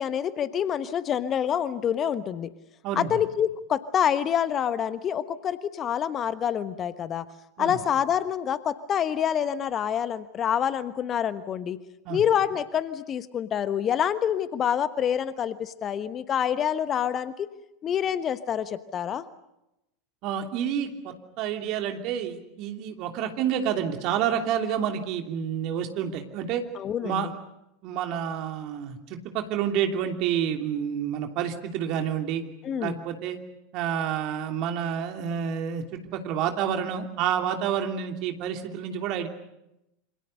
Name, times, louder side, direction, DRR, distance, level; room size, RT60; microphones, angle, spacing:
voice 1, 0.0-2.5 3.0-7.3 7.6-11.8 12.1-17.5 17.8-19.2 26.8-27.3 32.6-33.0, left 9 dB, 30° left, 13 dB, 1.2 m, -27 dB
voice 2, 2.8-3.2 7.6-7.8 12.0-12.2 20.2-26.6 27.0-27.3 27.8-32.4 32.8-33.4 33.7-39.3, right 8 dB, 45° right, 4 dB, 3.0 m, -29 dB
27.5 x 26.0 x 6.6 m, 0.89 s
figure-of-eight pair, 80°, 0 cm